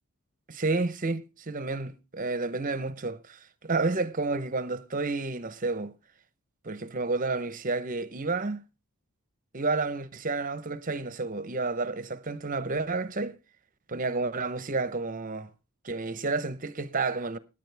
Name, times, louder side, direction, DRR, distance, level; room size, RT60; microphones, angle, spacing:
voice 1, 0.5-5.9 6.6-8.6 9.5-13.4 13.9-15.5 15.8-17.4, right 3 dB, 35° right, 0.8 m, -30 dB
17.5 x 10.0 x 3.4 m
head